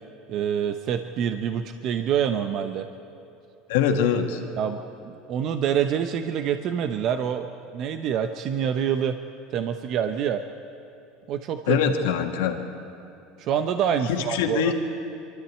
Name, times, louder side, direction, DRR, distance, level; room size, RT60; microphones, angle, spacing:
voice 1, 0.3-2.9 4.6-7.5 7.7-9.2 9.5-10.4 11.3-11.8 13.4-14.7, right 8 dB, 55° right, 8 dB, 0.8 m, -26 dB
voice 2, 3.7-4.4 11.7-12.6 14.1-14.7, left 8 dB, 85° left, 4 dB, 1.9 m, -23 dB
24.0 x 13.0 x 8.5 m, 2.7 s
supercardioid pair, 110°, 0 cm